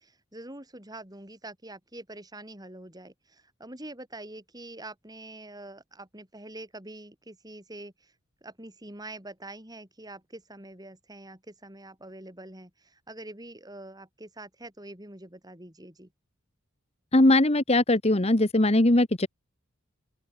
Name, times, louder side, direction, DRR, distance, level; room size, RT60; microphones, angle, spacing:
voice 1, 0.0-8.1 8.4-16.1, right 1 dB, 20° right, 5.0 m, -45 dB
voice 2, 17.1-19.3, left 1 dB, 30° left, 1.3 m, -20 dB
open air
head